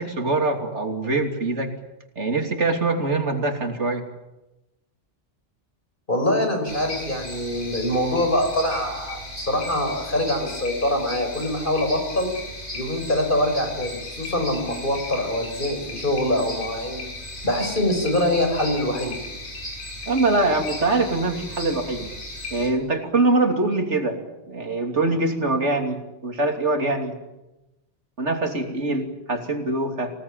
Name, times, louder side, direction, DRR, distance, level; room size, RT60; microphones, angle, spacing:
voice 1, 0.0-1.7 2.2-4.0 20.1-22.1 22.5-24.2 24.5-27.1 28.2-30.1, right 2 dB, 75° right, 4 dB, 3.2 m, -23 dB
voice 2, 6.1-12.3 12.7-19.2, left 1 dB, 45° left, 4 dB, 6.0 m, -24 dB
sound 1, 6.7-22.7, left 1 dB, 75° left, 8.1 m, -36 dB
25.5 x 18.0 x 9.1 m, 0.99 s
omnidirectional pair, 1.2 m